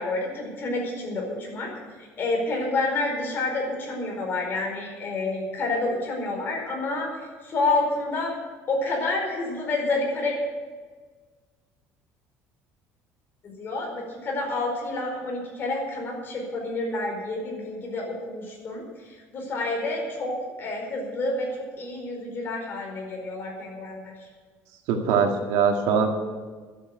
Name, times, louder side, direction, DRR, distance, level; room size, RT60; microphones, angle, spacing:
voice 1, 0.0-1.7 2.2-8.3 8.7-10.3 13.4-24.3, left 2 dB, 40° left, 0 dB, 4.7 m, -29 dB
voice 2, 24.9-26.1, right 6 dB, 90° right, 3 dB, 2.1 m, -22 dB
12.0 x 8.8 x 9.0 m, 1.5 s
cardioid pair, 140°, 6 cm